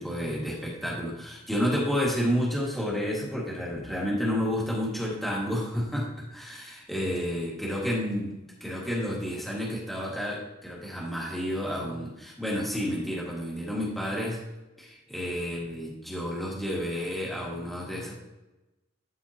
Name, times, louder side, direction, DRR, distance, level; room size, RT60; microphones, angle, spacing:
voice 1, 0.0-14.4 14.8-18.1, equal, ahead, -5 dB, 1.9 m, -30 dB
12.5 x 4.3 x 2.9 m, 1.0 s
head